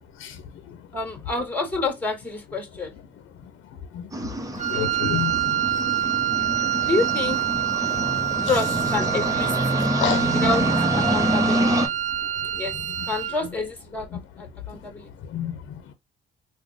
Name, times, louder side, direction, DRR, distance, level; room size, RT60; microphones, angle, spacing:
voice 1, 0.2-0.9 3.4-3.5 3.9-5.9 6.3-6.4 6.7-6.9 8.0-8.6 9.9-10.3 12.1-12.6 14.1-14.2 14.7-14.9 15.2-15.9, left 8 dB, 75° left, 0.7 m, -32 dB
voice 2, 0.9-2.9 4.7-4.9 6.9-7.4 8.4-9.5 10.3-10.7 11.0-11.9 12.6-12.7 13.1-15.1, left 3 dB, 10° left, 1.9 m, -28 dB
sound 1, 4.1-11.9, right 1 dB, 15° right, 0.9 m, -26 dB
Wind instrument woodwind instrument, 4.6-13.4, right 10 dB, 40° right, 0.5 m, -26 dB
3.6 x 2.2 x 3.4 m
cardioid pair, 90°, 20 cm